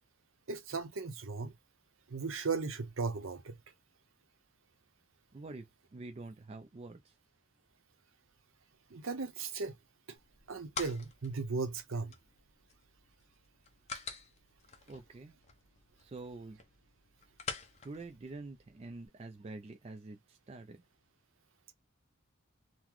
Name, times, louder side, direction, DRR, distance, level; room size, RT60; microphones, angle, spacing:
voice 1, 0.5-1.5 2.1-3.6 8.9-9.8 10.1-10.2 10.5-12.1, right 4 dB, 70° right, 0.8 m, -36 dB
voice 2, 5.3-7.1 14.9-15.3 16.0-16.6 17.8-20.8, right 3 dB, 30° right, 0.3 m, -47 dB
sound 1, 10.2-19.1, left 5 dB, 30° left, 0.7 m, -48 dB
3.8 x 2.1 x 3.0 m
head